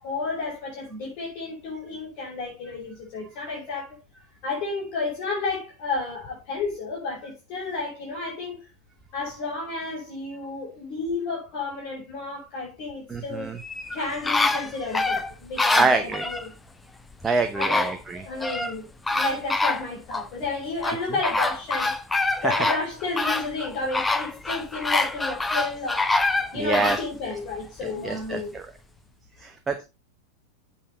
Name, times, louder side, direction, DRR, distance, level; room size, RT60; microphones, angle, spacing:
voice 1, 0.0-3.9 4.4-8.6 9.1-13.5 13.9-16.5 17.5-17.9 18.2-21.9 22.4-26.0 26.5-28.5, left 3 dB, 40° left, 6.2 m, -31 dB
voice 2, 13.1-13.6 15.8-16.2 17.2-18.2 22.4-22.5 26.5-27.0 28.0-28.6 29.4-29.8, right 3 dB, 15° right, 1.0 m, -25 dB
sound 1, 13.6-16.5 17.2-17.3 17.6-18.7 19.1-20.3 20.8-27.1 27.5-27.6, left 2 dB, 10° left, 0.9 m, -25 dB
8.7 x 7.4 x 4.3 m
figure-of-eight pair, 90°, 0 cm